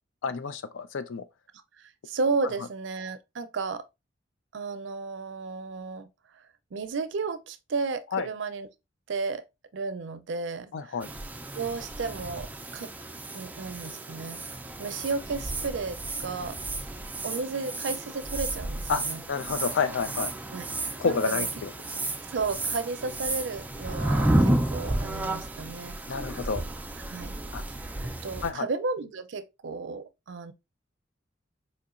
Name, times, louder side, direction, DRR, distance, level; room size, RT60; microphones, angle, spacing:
voice 1, 0.2-1.2 8.1-8.3 10.7-11.1 18.9-19.0 19.3-20.3 21.0-21.7 26.1-26.6 27.5-27.6 28.4-28.7, left 5 dB, 85° left, 0.4 m, -29 dB
voice 2, 1.8-3.9 4.5-6.1 6.3-6.4 6.7-8.7 9.1-9.4 9.7-11.0 11.5-12.9 13.3-14.4 14.8-16.6 17.2-19.2 20.5-20.7 21.0-21.5 22.3-26.0 27.1-27.4 27.7-27.8 28.2-30.5, right 4 dB, 70° right, 0.5 m, -33 dB
sound 1, 11.0-28.5, right 1 dB, 10° right, 0.3 m, -32 dB
4.3 x 2.9 x 2.4 m
head